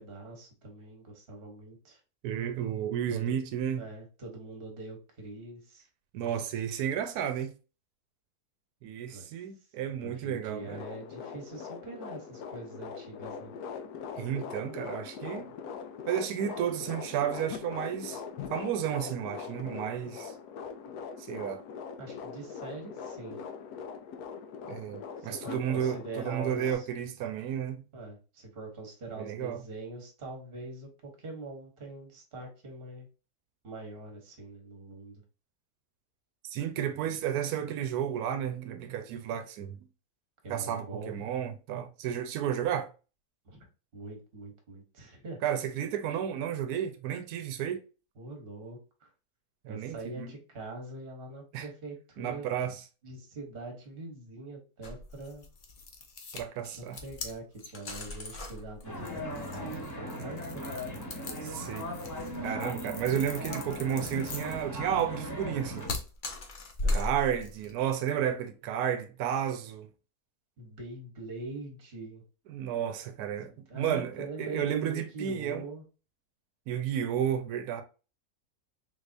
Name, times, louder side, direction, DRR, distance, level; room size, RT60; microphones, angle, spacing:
voice 1, 0.0-2.0 3.1-3.4 3.8-5.9 9.1-9.3 10.0-13.5 22.0-23.4 25.2-26.9 27.9-33.1 33.6-35.2 40.4-41.1 43.4-43.7 43.9-45.4 48.2-49.1 49.7-52.5 53.0-55.4 56.7-59.2 59.5-60.7 66.8-67.1 70.6-72.2 73.5-75.8, right 2 dB, 40° right, 1.2 m, -43 dB
voice 2, 2.2-3.8 6.1-7.5 8.8-10.8 14.2-15.5 16.1-18.2 18.5-20.3 21.3-21.6 24.7-27.8 29.2-29.6 36.5-39.8 40.5-42.9 45.4-47.8 49.6-50.3 51.5-51.7 52.2-52.8 56.3-57.0 61.4-61.8 62.4-65.9 66.9-69.9 72.5-75.6 76.7-77.8, right 9 dB, 80° right, 1.1 m, -32 dB
sound 1, 10.6-26.7, left 6 dB, 80° left, 1.1 m, -42 dB
sound 2, 54.8-67.8, left 2 dB, 45° left, 0.6 m, -38 dB
sound 3, 58.8-65.9, equal, 15° left, 0.9 m, -38 dB
3.9 x 3.4 x 2.5 m
omnidirectional pair, 1.6 m